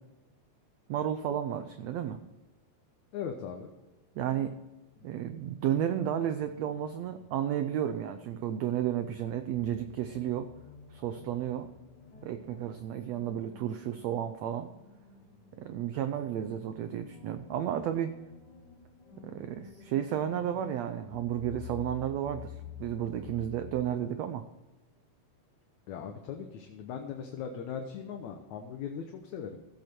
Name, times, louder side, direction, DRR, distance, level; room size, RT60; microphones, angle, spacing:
voice 1, 0.9-2.2 4.1-4.5 5.0-10.5 10.9-11.7 12.2-14.7 15.6-18.1 19.2-24.4, right 10 dB, 80° right, 9 dB, 1.5 m, -32 dB
voice 2, 3.1-3.7 25.9-29.6, left 7 dB, 70° left, 4 dB, 2.2 m, -39 dB
sound 1, 4.9-23.9, left 7 dB, 50° left, 1.3 m, -51 dB
16.5 x 8.1 x 4.5 m, 1.1 s
omnidirectional pair, 3.8 m